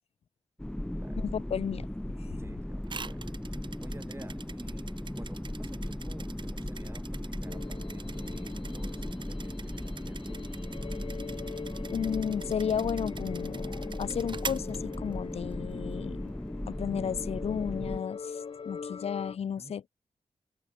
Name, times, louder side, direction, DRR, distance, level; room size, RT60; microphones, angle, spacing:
sound 1, 0.6-18.0, left 1 dB, 5° left, 2.1 m, -37 dB
voice 1, 1.2-2.4 11.9-16.3 16.7-19.9, left 7 dB, 70° left, 0.7 m, -33 dB
voice 2, 2.4-3.4 3.8-10.4 19.6-19.8, right 2 dB, 25° right, 6.5 m, -52 dB
sound 2, 2.9-15.5, right 5 dB, 45° right, 1.2 m, -45 dB
sound 3, 7.5-19.4, left 6 dB, 55° left, 1.1 m, -43 dB
wide cardioid pair, 90°, 11 cm